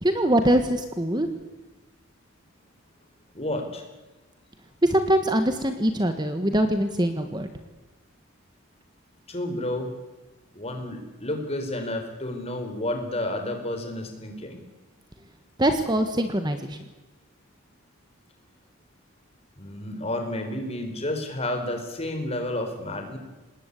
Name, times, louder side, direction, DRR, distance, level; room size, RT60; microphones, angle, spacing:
voice 1, 0.0-1.3 4.8-7.5 15.6-16.8, right 1 dB, 20° right, 8 dB, 1.5 m, -23 dB
voice 2, 3.3-3.8 9.3-9.9 10.5-14.6 19.6-23.2, left 1 dB, 30° left, 5 dB, 4.5 m, -31 dB
27.0 x 20.0 x 8.4 m, 1.2 s
head